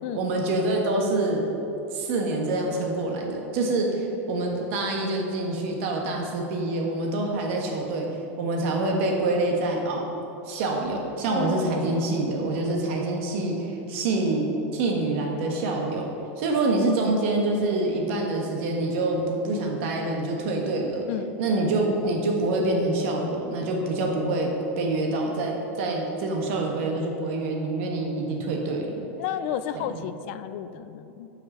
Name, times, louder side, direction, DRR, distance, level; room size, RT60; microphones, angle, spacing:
voice 1, 0.1-1.4 1.9-8.1 8.4-10.0 10.5-14.5 14.7-16.1 16.4-21.0 21.4-24.5 24.8-29.1 29.7-30.0, right 2 dB, 65° right, 1 dB, 1.4 m, -26 dB
voice 2, 11.3-12.0 21.1-21.4 29.2-31.3, left 10 dB, 60° left, 12 dB, 0.4 m, -32 dB
5.8 x 5.3 x 5.5 m, 2.9 s
supercardioid pair, 135°, 7 cm